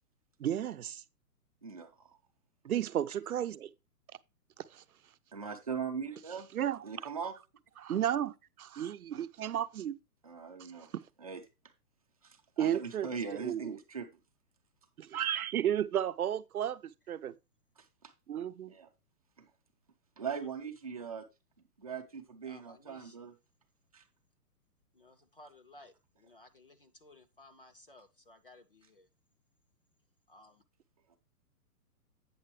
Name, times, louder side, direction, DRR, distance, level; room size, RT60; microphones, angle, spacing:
voice 1, 0.4-1.0 2.6-3.7 4.7-4.8 6.5-6.8 7.8-10.0 12.6-13.8 15.0-16.8 17.1-17.3 18.3-18.7, right 10 dB, 65° right, 0.7 m, -33 dB
voice 2, 1.6-2.1 5.3-6.5 6.8-7.3 10.2-10.9 11.2-11.4 12.2-14.1 18.7-18.9 19.4-19.5 20.2-21.2 21.8-23.3 23.9-24.0, right 6 dB, 25° right, 0.7 m, -40 dB
voice 3, 22.4-23.3 24.9-29.1 30.3-30.6, left 2 dB, 35° left, 0.5 m, -58 dB
8.7 x 6.6 x 3.2 m
hypercardioid pair, 180°, 46 cm